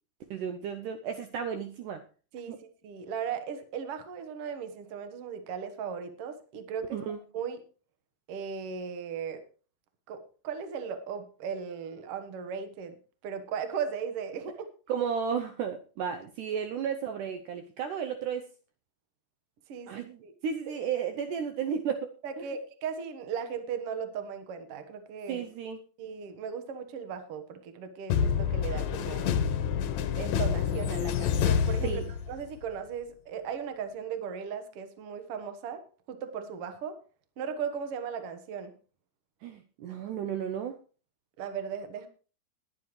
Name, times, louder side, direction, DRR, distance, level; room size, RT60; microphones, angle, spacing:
voice 1, 0.3-2.0 2.5-2.6 6.9-7.2 14.9-18.5 19.9-22.5 25.3-25.8 31.8-32.0 39.4-40.8, right 7 dB, 90° right, 7 dB, 1.8 m, -33 dB
voice 2, 2.8-7.0 7.3-7.6 8.3-9.4 10.1-12.9 13.2-14.7 19.7-20.3 20.7-20.8 22.2-25.5 26.0-29.3 30.2-32.0 32.3-35.8 36.1-37.0 37.4-38.7 41.4-42.1, right 7 dB, 70° right, 8 dB, 1.4 m, -37 dB
sound 1, 28.1-32.6, left 7 dB, 70° left, 2.1 m, -28 dB
20.5 x 9.4 x 3.2 m, 0.37 s
omnidirectional pair, 4.6 m